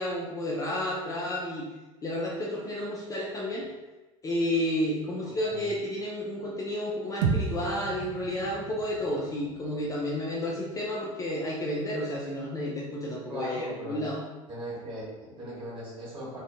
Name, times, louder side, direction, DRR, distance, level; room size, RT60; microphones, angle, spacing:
voice 1, 0.0-1.7 2.0-3.7 4.2-14.2, left 1 dB, 20° left, -4 dB, 0.4 m, -31 dB
voice 2, 5.3-5.7 13.3-14.0 14.5-16.4, right 1 dB, 30° right, -7 dB, 1.4 m, -39 dB
sound 1, 7.2-11.6, right 5 dB, 55° right, 0.4 m, -34 dB
2.4 x 2.2 x 2.7 m, 1.2 s
figure-of-eight pair, 75°, 18 cm